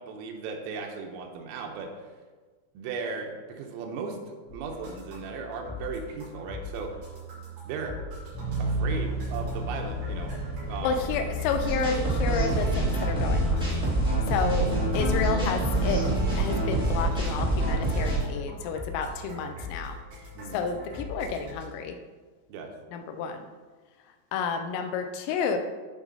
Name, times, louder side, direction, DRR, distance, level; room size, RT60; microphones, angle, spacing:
voice 1, 0.0-1.9 2.8-4.2 4.5-7.0 7.7-8.0 8.6-10.4 10.7-11.3 20.4-20.6 22.5-22.7, right 4 dB, 85° right, 2 dB, 3.5 m, -36 dB
sound 1, 4.5-21.6, left 1 dB, 50° right, 4.7 m, -41 dB
sound 2, 8.3-17.5, equal, 65° left, 3.9 m, -32 dB
voice 2, 10.8-13.6 14.3-14.7 14.9-16.0 16.3-20.0 20.5-22.0 22.9-23.5 24.3-25.6, left 5 dB, 85° left, 6 dB, 3.2 m, -30 dB
sound 3, 11.6-18.2, right 1 dB, ahead, 1.1 m, -27 dB
13.0 x 5.0 x 4.0 m, 1.4 s
omnidirectional pair, 5.9 m